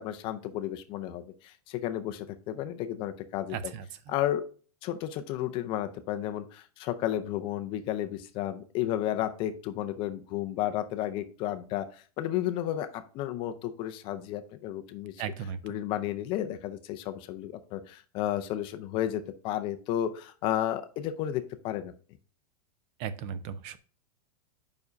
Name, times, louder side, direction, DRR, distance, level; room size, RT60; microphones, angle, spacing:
voice 1, 0.0-3.7 4.1-4.4 4.8-15.2 15.6-21.9, left 12 dB, 25° left, 10 dB, 0.4 m, -32 dB
voice 2, 3.5-3.9 15.2-15.8 23.0-23.8, right 7 dB, 35° right, 13 dB, 0.4 m, -36 dB
5.2 x 4.8 x 4.8 m, 0.39 s
supercardioid pair, 165°, 19 cm